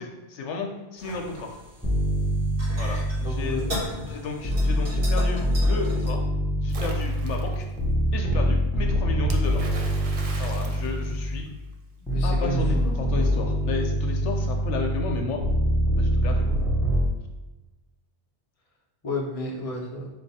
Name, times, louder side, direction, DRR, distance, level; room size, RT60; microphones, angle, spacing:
voice 1, 0.0-1.5 2.7-3.6 4.0-6.2 6.6-7.7 8.1-9.8 10.4-11.4 12.2-15.4 15.9-16.6, left 4 dB, 80° left, 2 dB, 1.0 m, -33 dB
sound 1, 1.0-6.1, left 1 dB, 80° right, 1.8 m, -38 dB
sound 2, 1.8-4.0 4.4-11.6 12.1-17.1, equal, 5° left, 0.6 m, -25 dB
voice 2, 3.2-3.8 12.0-13.0 19.0-20.1, left 1 dB, 35° left, -1 dB, 0.8 m, -32 dB
Splash splatter, 6.7-7.6 9.3-11.7, right 3 dB, 55° right, 0.4 m, -41 dB
4.0 x 2.6 x 4.1 m, 1.1 s
omnidirectional pair, 1.2 m